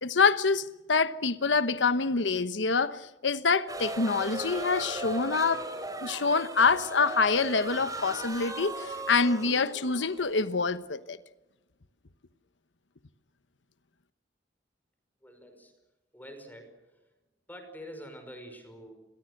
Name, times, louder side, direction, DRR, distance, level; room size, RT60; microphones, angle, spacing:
voice 1, 0.0-5.6 6.0-11.2, left 4 dB, 80° left, 1.1 m, -26 dB
sound 1, 3.7-10.8, right 2 dB, 20° right, 3.8 m, -38 dB
voice 2, 15.2-15.7 16.1-16.7 17.5-18.9, equal, 10° left, 5.6 m, -46 dB
29.5 x 22.5 x 6.7 m
head